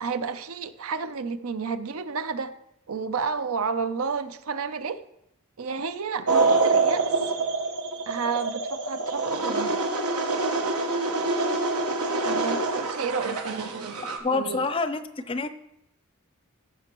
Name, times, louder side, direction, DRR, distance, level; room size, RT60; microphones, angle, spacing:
voice 1, 0.0-2.5 2.9-5.0 5.6-7.3 8.1-9.8 12.2-14.0 14.3-14.7, right 5 dB, 65° right, 12 dB, 0.6 m, -31 dB
sound 1, 6.3-14.2, right 3 dB, 85° right, 1.3 m, -26 dB
voice 2, 14.2-15.5, left 3 dB, 25° left, 10 dB, 0.5 m, -27 dB
15.5 x 6.7 x 3.0 m, 0.80 s
head